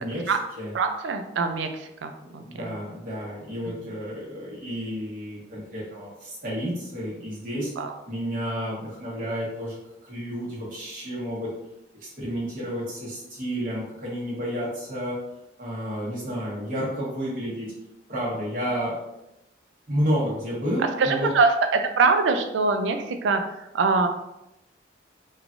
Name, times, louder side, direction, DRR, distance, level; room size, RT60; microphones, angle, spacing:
voice 1, 0.0-0.7 2.2-7.7 8.1-9.8 10.0-11.5 12.0-15.2 15.6-17.7 18.1-19.2 19.9-21.3, equal, 50° right, -6 dB, 1.1 m, -31 dB
voice 2, 0.7-2.7 3.8-3.9 7.8-7.9 21.0-24.1, right 4 dB, 80° right, 6 dB, 0.4 m, -24 dB
3.2 x 2.3 x 2.5 m, 0.88 s
head